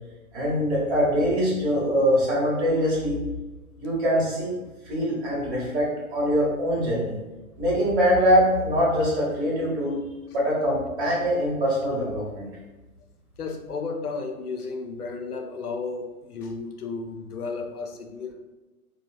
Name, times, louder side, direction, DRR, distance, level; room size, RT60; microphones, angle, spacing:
voice 1, 0.3-3.2 3.8-4.6 4.8-7.2 7.6-10.0 10.3-12.5, equal, 45° right, -5 dB, 1.3 m, -23 dB
voice 2, 13.4-18.3, left 4 dB, 85° left, 5 dB, 0.6 m, -33 dB
3.0 x 2.3 x 2.3 m, 1.1 s
figure-of-eight pair, 120°, 44 cm